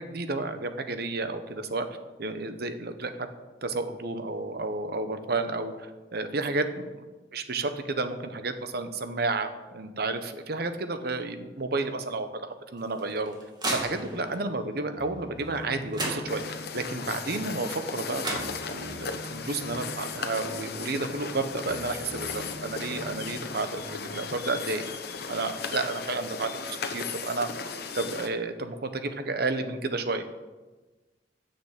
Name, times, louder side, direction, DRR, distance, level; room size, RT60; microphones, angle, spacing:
voice 1, 0.0-1.9 2.2-3.1 3.6-6.9 7.3-13.3 13.7-16.4 16.7-24.9 25.3-30.2, right 3 dB, 60° right, 8 dB, 1.0 m, -31 dB
sound 1, 12.8-14.4 15.6-15.7 15.9-16.8 17.9-18.0 18.2-19.1, right 1 dB, 25° right, 2.3 m, -34 dB
sound 2, 13.7-26.7, left 1 dB, 30° left, 1.0 m, -46 dB
sound 3, 16.3-28.3, left 5 dB, 60° left, 1.0 m, -36 dB
9.7 x 7.1 x 7.4 m, 1.2 s
head